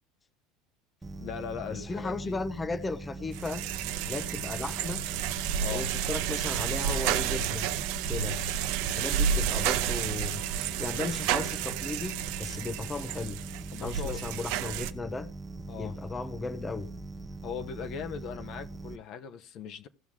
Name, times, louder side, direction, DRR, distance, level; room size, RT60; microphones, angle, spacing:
sound 1, 1.0-19.0, right 2 dB, 10° right, 1.0 m, -42 dB
voice 1, 1.2-2.4 5.6-5.9 13.7-14.2 15.7-16.0 17.4-19.9, left 7 dB, 55° left, 1.0 m, -39 dB
voice 2, 1.7-3.6 4.0-5.0 5.7-7.7 8.1-8.4 9.0-10.4 10.8-13.4 13.8-15.3 15.8-16.9, left 3 dB, 20° left, 0.7 m, -35 dB
sound 2, 3.3-14.9, right 9 dB, 75° right, 0.7 m, -31 dB
16.5 x 6.0 x 3.7 m
supercardioid pair, 105°, 0 cm